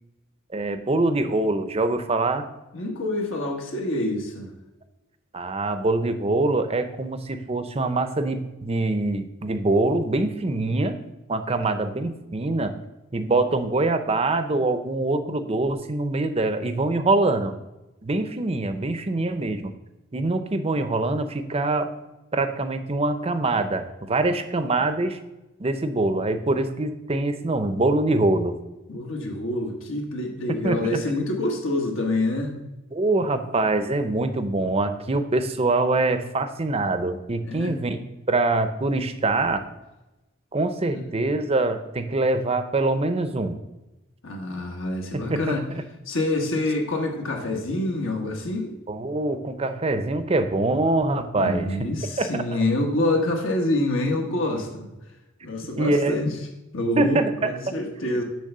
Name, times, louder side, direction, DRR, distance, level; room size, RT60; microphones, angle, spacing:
voice 1, 0.5-2.5 5.3-11.0 11.3-12.7 13.1-17.5 18.0-19.7 20.1-21.9 22.3-25.2 25.6-28.6 30.6-31.0 32.9-38.0 38.3-39.6 40.5-43.5 45.1-45.8 48.9-51.7 52.2-52.4 55.8-56.2 57.0-57.5, right 2 dB, 30° right, 9 dB, 0.6 m, -24 dB
voice 2, 2.7-4.5 28.9-32.6 37.5-37.7 40.9-41.0 44.2-45.6 46.1-48.7 51.3-54.9 55.4-56.4 56.7-58.2, left 1 dB, 70° left, 2 dB, 1.4 m, -26 dB
10.0 x 3.4 x 6.7 m, 1.0 s
head